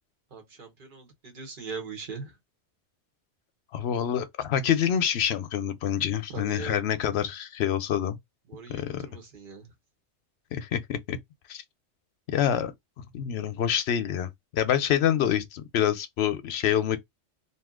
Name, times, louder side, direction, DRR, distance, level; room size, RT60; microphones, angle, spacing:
voice 1, 0.3-2.3 6.3-6.8 8.5-9.7, right 5 dB, 50° right, 1.1 m, -40 dB
voice 2, 3.7-8.2 8.7-9.0 10.5-11.2 11.5-11.6 12.3-12.7 13.1-17.0, left 9 dB, 70° left, 0.8 m, -26 dB
2.7 x 2.4 x 3.5 m
omnidirectional pair, 1.2 m